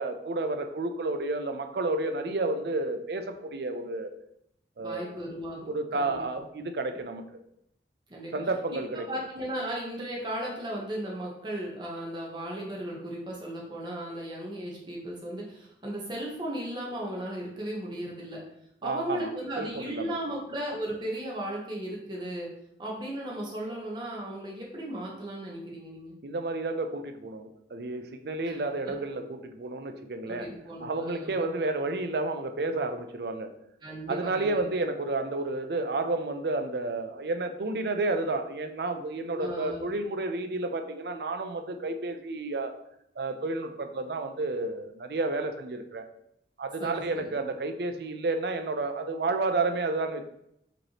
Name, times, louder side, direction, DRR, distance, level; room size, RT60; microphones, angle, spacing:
voice 1, 0.0-4.1 4.8-5.1 5.7-7.2 8.3-9.2 18.8-19.3 19.6-20.1 26.2-30.5 30.8-33.5 34.1-42.7 43.2-46.1 46.6-50.2, right 2 dB, 65° right, 6 dB, 0.5 m, -31 dB
voice 2, 4.8-6.2 6.5-6.7 8.1-8.3 8.7-8.8 9.1-18.4 18.8-22.5 22.8-26.2 28.4-28.6 30.3-31.3 33.8-34.5 39.3-39.9 46.8-47.3, right 1 dB, 25° right, -3 dB, 1.0 m, -36 dB
5.1 x 3.2 x 2.9 m, 0.76 s
head